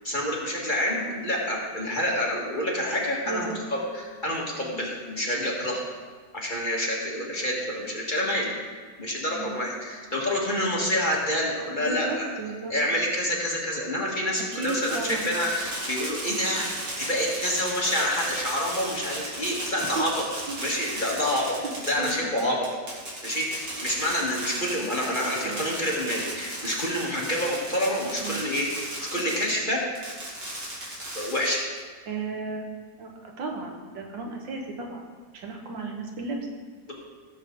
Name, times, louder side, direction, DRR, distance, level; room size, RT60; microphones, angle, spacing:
voice 1, 0.0-5.9 6.3-8.5 9.0-12.3 12.7-20.2 20.6-21.6 21.9-22.6 23.2-28.7 29.0-29.8 31.1-31.6 36.9-37.0, equal, 25° left, -3 dB, 1.6 m, -28 dB
voice 2, 3.3-3.6 9.3-9.6 11.8-12.7 14.6-15.3 19.8-20.0 20.5-20.6 20.8-21.2 21.6-21.7 22.0-22.6 24.3-24.5 25.4-25.7 28.2-28.4 32.1-32.7 33.0-35.0 35.3-36.4, right 3 dB, 75° right, 1 dB, 2.0 m, -34 dB
Fireworks, 14.3-29.5 30.0-31.8, right 1 dB, 50° right, 2.9 m, -35 dB
16.0 x 7.3 x 3.8 m, 1.5 s
omnidirectional pair, 2.0 m